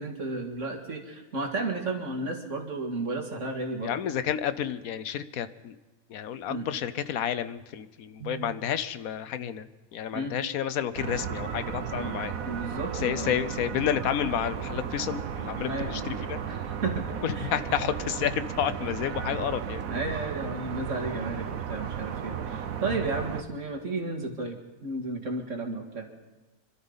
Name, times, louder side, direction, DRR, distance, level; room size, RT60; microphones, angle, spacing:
voice 1, 0.0-4.0 6.5-6.7 8.2-8.5 10.1-10.4 12.0-12.2 12.4-13.4 15.7-15.9 16.5-17.1 17.3-17.8 19.9-26.1, right 2 dB, 60° right, 2 dB, 2.3 m, -33 dB
voice 2, 3.8-5.8 6.1-12.3 12.9-16.4 17.2-19.8, left 9 dB, 85° left, 13 dB, 1.2 m, -30 dB
sound 1, 11.0-23.4, right 8 dB, 80° right, 1.3 m, -34 dB
25.5 x 13.0 x 4.0 m, 1.2 s
omnidirectional pair, 1.4 m